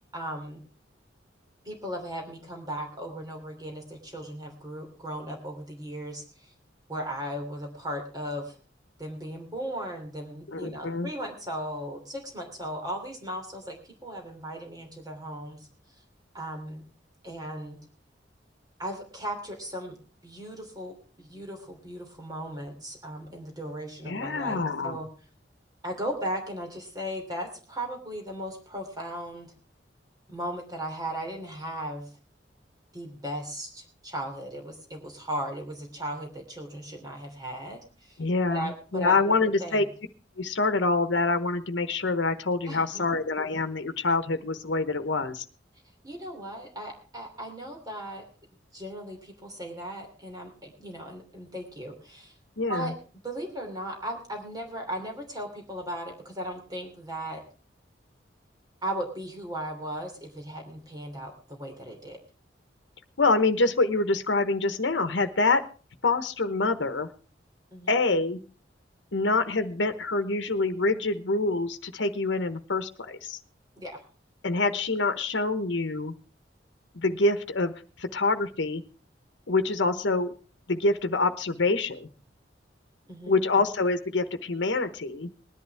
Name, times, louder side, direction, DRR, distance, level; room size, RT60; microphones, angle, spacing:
voice 1, 0.1-0.6 1.6-6.5 6.9-8.5 9.0-13.8 14.0-15.6 16.3-16.8 17.2-17.8 18.8-20.0 20.2-25.1 25.8-29.5 30.3-32.1 32.9-38.2 38.5-39.9 42.6-43.0 46.0-48.2 48.7-52.3 52.7-52.9 53.2-57.4 58.8-62.2 67.7-68.0 73.8-74.0 83.1-83.4, right 1 dB, 20° right, 2 dB, 3.0 m, -37 dB
voice 2, 10.5-11.1 24.0-25.0 38.2-39.8 40.4-45.4 52.6-52.9 63.2-65.6 66.0-67.1 67.9-68.4 69.1-73.4 74.4-76.1 76.9-77.7 78.0-78.8 79.5-80.3 80.7-82.1 83.3-85.3, left 3 dB, 80° left, 9 dB, 1.0 m, -26 dB
20.0 x 11.0 x 3.4 m, 0.36 s
head